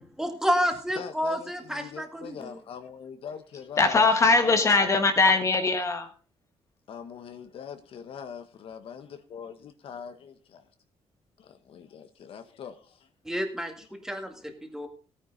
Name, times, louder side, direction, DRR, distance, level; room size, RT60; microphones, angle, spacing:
voice 1, 0.2-2.5 13.2-13.7 14.0-14.9, equal, 5° right, 2.0 m, -29 dB
voice 2, 1.0-4.0 6.9-10.7 11.4-13.1 14.3-14.4, left 7 dB, 60° left, 1.3 m, -42 dB
voice 3, 3.8-6.1, left 3 dB, 30° left, 1.4 m, -21 dB
17.0 x 9.4 x 4.0 m
cardioid pair, 165°, 10 cm